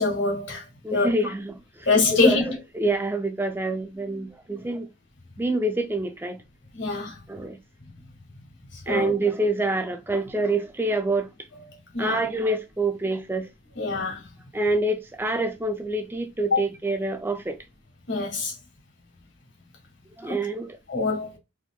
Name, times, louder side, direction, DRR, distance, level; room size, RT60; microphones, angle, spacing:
voice 1, 0.0-0.7 0.9-1.1 1.9-2.6 6.7-7.2 8.7-9.1 11.9-12.2 13.8-14.3 16.5-16.6 18.1-18.5 20.3-20.4 20.9-21.4, left 3 dB, 60° left, 2.0 m, -24 dB
voice 2, 0.8-1.9 2.2-4.9 5.4-6.4 7.3-7.6 8.9-11.3 12.0-13.5 14.5-17.6 20.2-20.8, right 2 dB, 10° right, 0.3 m, -26 dB
4.7 x 4.2 x 2.2 m
head